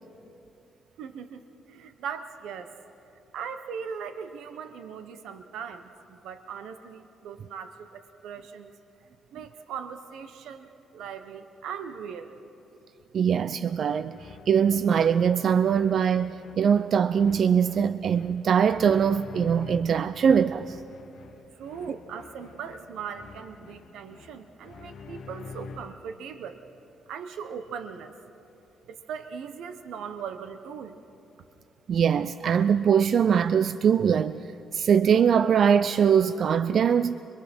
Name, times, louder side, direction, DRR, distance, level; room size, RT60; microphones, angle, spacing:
voice 1, 1.0-2.7 3.3-8.7 9.3-12.4 21.6-26.6 27.1-28.1 28.9-31.0, right 7 dB, 80° right, 0.9 m, -39 dB
voice 2, 13.1-20.8 31.9-34.5 34.7-37.2, right 7 dB, 55° right, 0.4 m, -22 dB
sound 1, 14.1-26.1, left 4 dB, 65° left, 1.2 m, -47 dB
23.5 x 23.0 x 6.1 m
cardioid pair, 90°, 0 cm